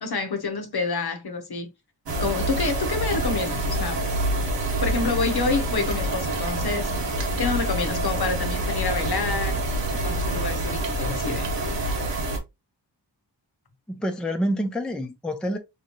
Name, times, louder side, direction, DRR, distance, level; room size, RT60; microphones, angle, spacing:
voice 1, 0.0-1.7 2.2-4.0 4.8-9.6 9.9-11.5, left 4 dB, 55° left, 0.8 m, -28 dB
sound 1, 2.1-12.4, right 1 dB, 65° right, 1.1 m, -26 dB
voice 2, 13.9-15.6, equal, ahead, 0.6 m, -27 dB
3.7 x 2.9 x 2.9 m
wide cardioid pair, 100°, 46 cm